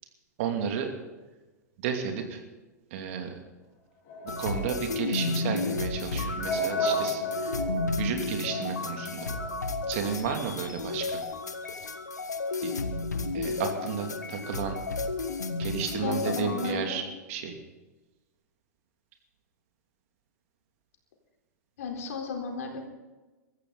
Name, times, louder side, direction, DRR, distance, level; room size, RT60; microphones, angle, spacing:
voice 1, 0.4-0.9 1.8-2.4 2.9-3.4 4.2-7.5 8.0-9.3 9.9-11.2 12.6-12.7 13.3-14.8 15.6-17.0 17.3-17.5, right 7 dB, 50° right, 4 dB, 2.7 m, -32 dB
sound 1, 4.1-9.6, equal, 40° left, 4.9 m, -34 dB
sound 2, 4.3-16.7, left 3 dB, 75° left, 1.4 m, -32 dB
voice 2, 15.8-17.1 21.8-22.9, left 4 dB, 60° left, 2 dB, 4.0 m, -34 dB
23.5 x 14.0 x 4.1 m, 1.2 s
figure-of-eight pair, 95°, 9 cm